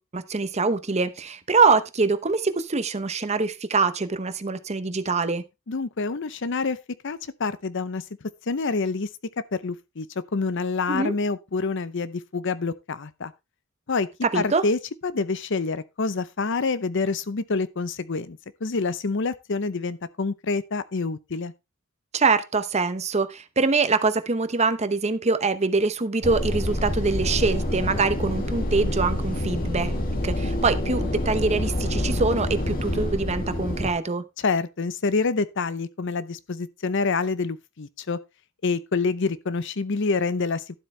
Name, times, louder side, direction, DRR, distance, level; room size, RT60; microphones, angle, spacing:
voice 1, 0.0-5.4 10.9-11.1 14.2-14.6 22.1-30.0 30.2-34.2, right 4 dB, 30° right, 0.8 m, -24 dB
voice 2, 5.7-6.8 7.0-9.1 9.5-10.1 10.3-13.3 13.9-14.1 14.3-21.5 34.4-38.2 38.6-40.7, left 4 dB, 60° left, 0.7 m, -27 dB
sound 1, 26.2-33.9, left 1 dB, 45° left, 2.3 m, -27 dB
12.0 x 7.8 x 3.3 m
head